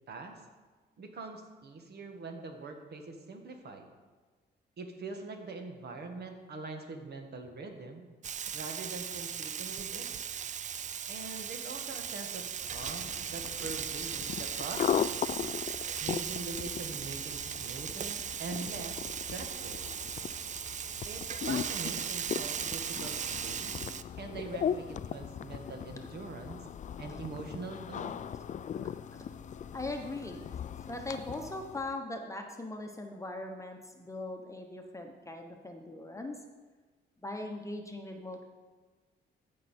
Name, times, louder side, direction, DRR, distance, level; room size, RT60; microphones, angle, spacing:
voice 1, 0.1-0.4 1.0-3.9 4.8-8.1 8.5-10.1 11.1-15.0 16.0-19.9 21.0-23.8 24.2-26.6 27.0-28.3, right 3 dB, 55° right, 4 dB, 1.7 m, -43 dB
Frying (food), 8.2-24.0, right 8 dB, 40° right, 0.4 m, -38 dB
sound 1, 12.6-31.9, left 8 dB, 40° left, 0.4 m, -38 dB
voice 2, 29.7-30.4 30.8-36.4 37.2-38.4, left 2 dB, 15° left, 3 dB, 1.0 m, -40 dB
15.0 x 5.6 x 4.4 m, 1.3 s
cardioid pair, 90°, 20 cm